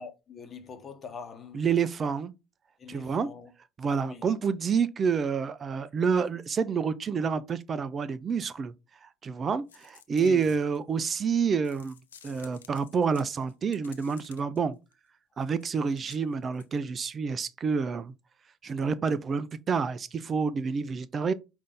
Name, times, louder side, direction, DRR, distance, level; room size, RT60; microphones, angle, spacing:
voice 1, 0.0-1.7 2.8-3.5 4.0-4.3 10.2-10.5, left 5 dB, 35° left, 1.0 m, -43 dB
voice 2, 1.5-2.3 2.9-3.3 3.8-8.7 9.0-12.0 12.2-14.8 15.4-18.1 18.6-21.3, right 6 dB, 35° right, 0.4 m, -28 dB
sound 1, 9.7-11.2 11.6-14.6 14.9-15.0 15.4-16.7, left 8 dB, 85° left, 0.4 m, -54 dB
5.1 x 2.6 x 3.5 m
hypercardioid pair, 65°, 0 cm